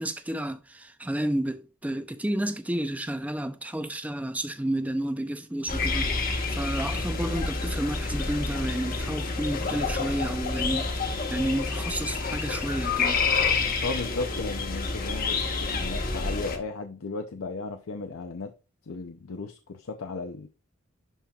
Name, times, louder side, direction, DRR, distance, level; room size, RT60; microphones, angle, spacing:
voice 1, 0.0-10.9 11.3-13.2, right 1 dB, 5° right, 0.5 m, -31 dB
sound 1, 5.7-16.6, left 4 dB, 45° left, 1.2 m, -28 dB
voice 2, 13.8-18.5 18.9-20.5, left 3 dB, 80° left, 0.6 m, -35 dB
11.0 x 4.3 x 2.4 m
head